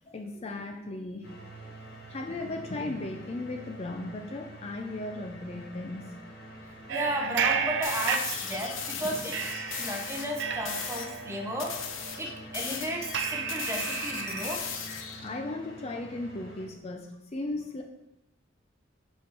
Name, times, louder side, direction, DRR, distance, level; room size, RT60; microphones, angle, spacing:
voice 1, 0.1-1.5 2.1-6.1 8.9-9.3 13.5-13.6 15.2-17.8, left 2 dB, 30° left, 4 dB, 0.4 m, -36 dB
sound 1, 1.2-16.7, right 1 dB, 50° left, 1.3 m, -47 dB
voice 2, 6.9-9.4 9.7-11.7 12.2-14.6, equal, 15° right, 2 dB, 0.8 m, -34 dB
sound 2, 6.9-8.9 9.3-14.6, right 7 dB, 60° right, 0.5 m, -33 dB
sound 3, 7.8-10.3 10.6-11.1 11.6-15.3, left 6 dB, 75° left, 0.8 m, -37 dB
5.4 x 5.2 x 4.6 m, 0.91 s
head